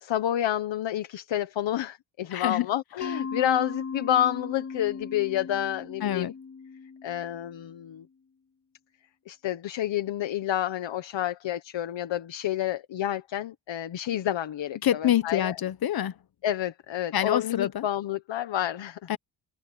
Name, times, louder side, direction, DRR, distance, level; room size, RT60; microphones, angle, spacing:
voice 1, 0.0-6.3 7.0-8.1 9.3-15.6 16.4-19.0, left 11 dB, 85° left, 1.3 m, -29 dB
voice 2, 2.3-2.7 6.0-6.3 14.8-16.1 17.1-17.8 19.1-19.2, left 11 dB, 55° left, 1.0 m, -26 dB
Mallet percussion, 3.0-7.8, left 5 dB, 35° left, 5.8 m, -38 dB
wide cardioid pair, 165°, 44 cm